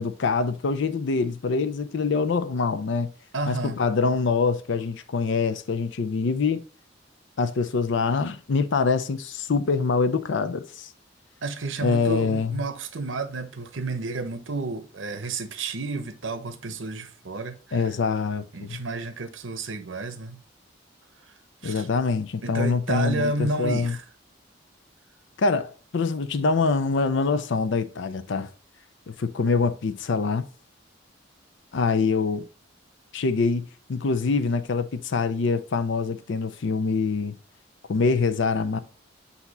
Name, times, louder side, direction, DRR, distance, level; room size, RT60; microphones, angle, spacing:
voice 1, 0.0-3.1 3.5-6.6 7.4-10.9 11.8-12.6 17.7-18.8 21.6-24.0 25.4-28.5 29.1-30.5 31.7-32.5 33.1-37.4 37.9-38.8, left 4 dB, 65° left, 0.5 m, -25 dB
voice 2, 3.3-3.8 11.4-17.8 18.5-20.4 21.6-21.9 22.4-24.0, right 3 dB, 75° right, 0.9 m, -31 dB
8.1 x 2.8 x 4.1 m
head